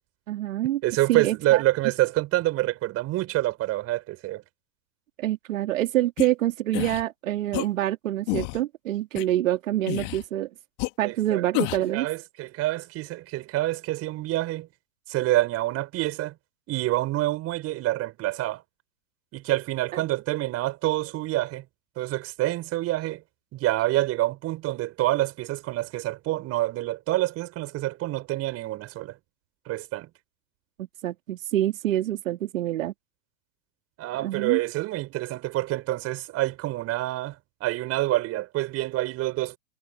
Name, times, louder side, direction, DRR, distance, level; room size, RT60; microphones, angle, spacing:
voice 1, 0.3-0.8 1.1-1.6 5.2-10.5 11.0-12.1 19.9-20.0 30.8-32.9 34.2-34.6, right 13 dB, 65° right, 2.7 m, -26 dB
voice 2, 0.8-4.4 11.0-11.4 11.9-14.7 15.1-16.3 16.7-18.6 19.3-21.6 22.0-23.2 23.5-29.1 29.7-30.1 34.0-39.6, right 16 dB, 35° right, 5.2 m, -27 dB
sound 1, 6.2-6.3 6.7-7.0 7.5-7.7 8.3-8.6 9.2-9.3 9.9-10.2 10.8-10.9 11.5-11.9, left 29 dB, 40° left, 2.4 m, -29 dB
hypercardioid pair, 115°, 43 cm